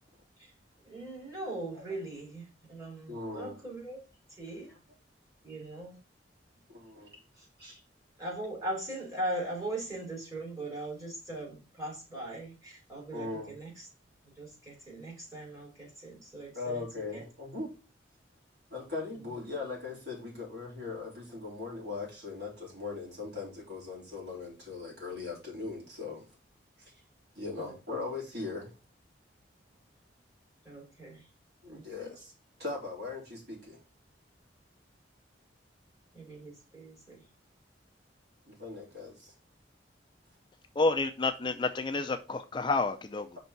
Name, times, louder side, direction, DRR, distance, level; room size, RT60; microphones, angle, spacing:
voice 1, 0.8-4.0 4.4-4.7 5.4-6.0 7.4-7.5 8.2-13.8 14.4-16.9 17.1-17.2 27.6-28.0 30.6-31.2 31.7-32.1 36.1-37.2, right 1 dB, 20° right, 3.4 m, -40 dB
voice 2, 3.1-3.6 4.7-4.8 6.7-7.2 7.6-7.8 13.1-13.5 16.6-17.7 18.7-26.3 26.8-26.9 27.4-28.7 31.6-32.3 32.6-33.8 38.5-39.3, left 3 dB, 60° right, 3.5 m, -39 dB
voice 3, 40.8-43.3, left 3 dB, 25° left, 0.4 m, -29 dB
5.3 x 4.0 x 5.7 m
head